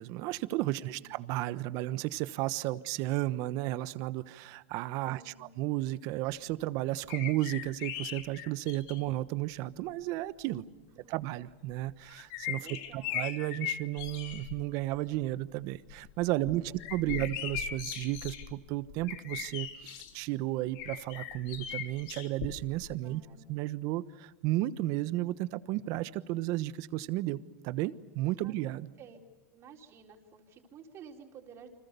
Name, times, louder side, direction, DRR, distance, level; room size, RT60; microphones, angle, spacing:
voice 1, 0.0-10.6 11.1-12.7 12.9-16.6 16.9-23.2 23.5-28.9, right 16 dB, 55° right, 14 dB, 1.2 m, -33 dB
voice 2, 0.8-1.1 2.7-2.8 5.1-5.5 11.0-11.2 12.6-13.2 16.4-17.2 23.0-23.5 28.4-28.5 29.0-29.2 29.5-31.7, right 6 dB, 40° right, 1 dB, 4.3 m, -53 dB
sound 1, 7.1-9.1 10.0-10.1 11.7-14.6 14.9-15.3 15.7-20.1 20.7-22.9 23.1-23.2, left 10 dB, 60° left, 3.2 m, -39 dB
29.5 x 25.5 x 6.9 m, 1.0 s
supercardioid pair, 115°, 7 cm